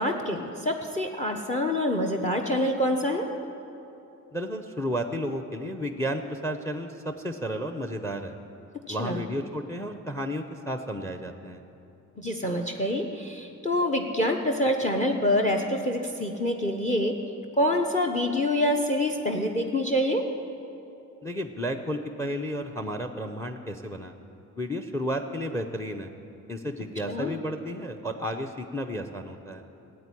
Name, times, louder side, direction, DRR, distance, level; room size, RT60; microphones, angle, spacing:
voice 1, 0.0-3.3 8.9-9.2 12.2-17.1 17.6-20.2 27.1-27.3, left 1 dB, 25° left, 4 dB, 1.1 m, -26 dB
voice 2, 4.3-8.4 8.9-11.6 21.2-24.1 24.6-26.1 26.5-29.6, equal, 10° left, 7 dB, 0.8 m, -32 dB
14.0 x 8.5 x 9.9 m, 2.8 s
cardioid pair, 90°, 30 cm